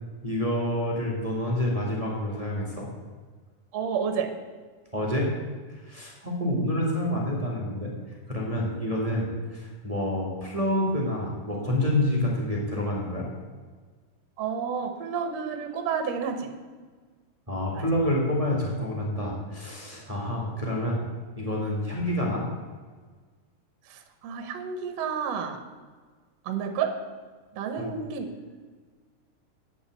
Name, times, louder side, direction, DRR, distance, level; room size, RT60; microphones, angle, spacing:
voice 1, 0.2-2.9 4.9-5.3 5.7-13.3 17.5-21.0 21.3-22.5 27.8-27.9, left 1 dB, 25° right, -3 dB, 0.8 m, -28 dB
voice 2, 3.7-4.3 14.4-16.5 17.7-17.8 23.9-25.6 26.4-26.9 27.5-28.3, right 6 dB, 65° right, 7 dB, 1.7 m, -30 dB
8.3 x 7.1 x 8.1 m, 1.5 s
omnidirectional pair, 3.9 m